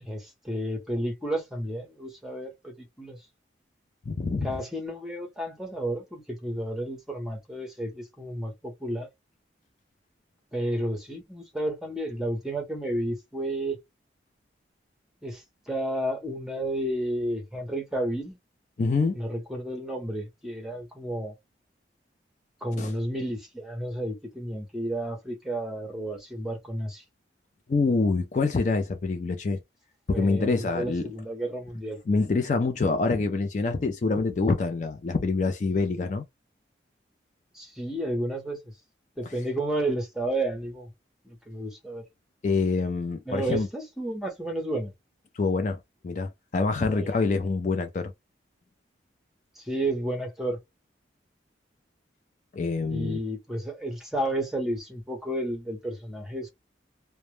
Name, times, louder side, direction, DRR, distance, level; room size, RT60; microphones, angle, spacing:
voice 1, 0.0-3.2 4.4-9.1 10.5-13.8 15.2-18.4 19.1-21.3 22.6-27.0 30.1-32.0 37.5-38.7 39.2-40.9 41.2-42.0 43.3-44.9 46.9-47.1 49.6-50.6 52.9-56.5, right 1 dB, 5° right, 0.7 m, -32 dB
voice 2, 4.1-4.5 18.8-19.2 22.8-22.9 27.7-29.6 30.1-31.1 32.1-36.2 42.4-43.7 45.3-45.8 46.0-48.1 52.5-53.2, left 3 dB, 40° left, 0.3 m, -26 dB
2.1 x 2.1 x 3.0 m
head